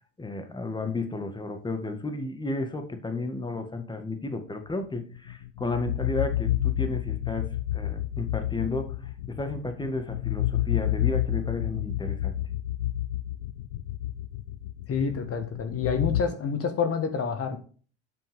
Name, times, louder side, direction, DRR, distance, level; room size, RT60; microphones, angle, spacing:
voice 1, 0.2-12.4, left 2 dB, 10° left, 7 dB, 1.8 m, -33 dB
sound 1, 5.1-16.2, left 13 dB, 70° left, 0.6 m, -30 dB
voice 2, 14.9-17.6, left 5 dB, 40° left, 7 dB, 1.7 m, -28 dB
12.5 x 6.0 x 3.7 m, 0.39 s
hypercardioid pair, 65°, 36 cm